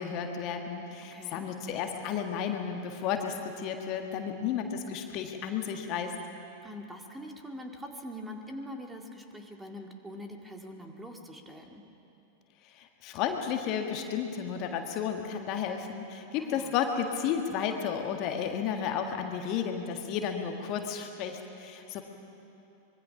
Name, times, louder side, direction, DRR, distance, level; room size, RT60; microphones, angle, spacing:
voice 1, 0.0-6.1 12.6-22.0, left 7 dB, 40° left, 4 dB, 1.6 m, -33 dB
voice 2, 1.1-1.5 6.6-11.8 16.4-16.8, equal, 10° right, 3 dB, 2.1 m, -43 dB
25.0 x 22.0 x 5.8 m, 2.8 s
figure-of-eight pair, 90°, 0 cm